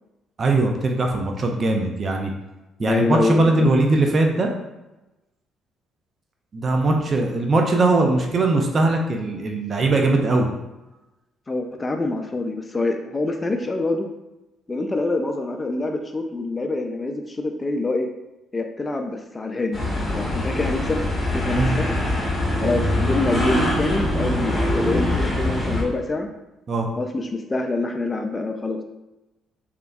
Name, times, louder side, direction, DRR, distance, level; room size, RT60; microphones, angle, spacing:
voice 1, 0.4-2.3 2.8-4.5 6.5-10.5 21.6-21.8 26.7-26.9, right 2 dB, 45° right, 2 dB, 0.4 m, -20 dB
voice 2, 2.8-3.7 11.5-14.1 14.7-18.1 18.5-19.8 20.1-21.0 21.3-21.9 22.6-26.3 27.0-28.8, left 2 dB, 25° left, 5 dB, 0.3 m, -25 dB
sound 1, 19.7-25.8, left 1 dB, 10° left, 0.9 m, -23 dB
3.4 x 2.1 x 2.2 m, 0.99 s
hypercardioid pair, 55°, 0 cm